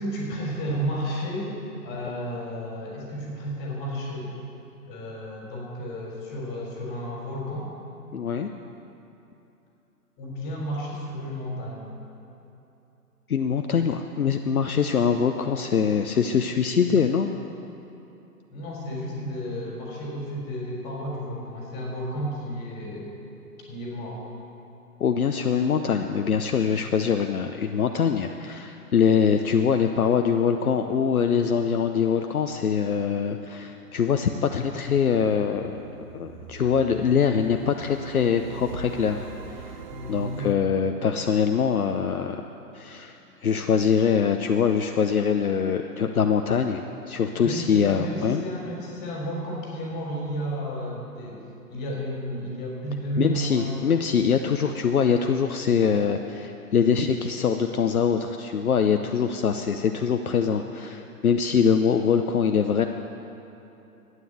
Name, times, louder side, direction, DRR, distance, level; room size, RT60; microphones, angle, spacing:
voice 1, 0.0-4.3 4.9-7.7 10.2-11.9 18.5-23.2 23.7-24.2 39.9-40.5 47.4-51.4 51.7-53.8 61.4-61.7, equal, 20° left, -2 dB, 3.8 m, -32 dB
voice 2, 8.1-8.5 13.3-17.3 25.0-39.2 39.5-39.7 40.1-42.5 42.7-43.2 43.4-48.4 53.2-62.9, left 6 dB, 65° left, 6 dB, 0.8 m, -23 dB
sound 1, 33.7-40.5, right 5 dB, 30° right, 0.6 m, -43 dB
12.5 x 9.4 x 8.2 m, 2.9 s
figure-of-eight pair, 125°, 46 cm